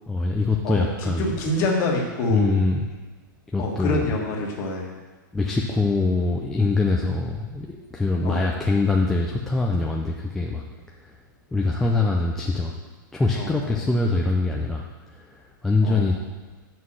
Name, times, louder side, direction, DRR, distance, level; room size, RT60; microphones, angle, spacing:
voice 1, 0.1-1.3 2.3-2.8 3.5-4.1 5.3-10.6 11.5-12.7 13.1-14.9 15.2-15.3 15.6-16.2, left 3 dB, 5° left, -2 dB, 0.3 m, -23 dB
voice 2, 0.6-2.5 3.6-4.9 8.2-8.5 13.3-13.8 15.8-16.1, left 2 dB, 25° left, -1 dB, 1.5 m, -26 dB
7.4 x 6.0 x 6.3 m, 1.3 s
hypercardioid pair, 170°, 11 cm